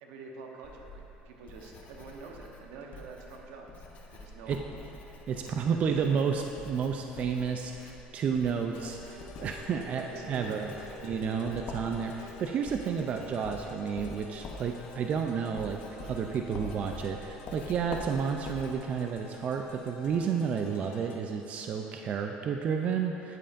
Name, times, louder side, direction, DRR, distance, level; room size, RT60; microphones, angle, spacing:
voice 1, 0.0-3.8 4.1-4.7 5.3-5.8 9.9-10.9 11.3-11.6, right 4 dB, 85° right, 1 dB, 1.0 m, -47 dB
Writing, 0.6-20.2, left 2 dB, 45° left, 0.9 m, -46 dB
voice 2, 5.3-10.7 11.0-23.4, right 6 dB, 40° right, 4 dB, 0.4 m, -31 dB
sound 1, 8.7-21.2, left 4 dB, 80° left, 0.9 m, -49 dB
9.2 x 8.6 x 2.5 m, 3.0 s
cardioid pair, 125°, 3 cm